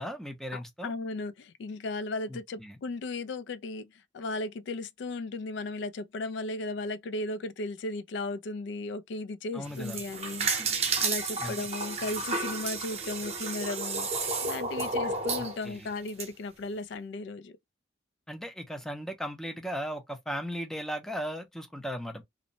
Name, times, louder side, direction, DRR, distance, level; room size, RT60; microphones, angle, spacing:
voice 1, 0.0-0.9 2.3-2.8 9.5-10.0 11.4-11.6 15.3-15.9 18.3-22.2, equal, 5° left, 0.5 m, -37 dB
voice 2, 0.5-14.1 14.4-17.6, left 2 dB, 70° left, 0.3 m, -36 dB
sound 1, 9.7-16.3, right 4 dB, 35° right, 0.7 m, -32 dB
2.5 x 2.0 x 2.8 m
head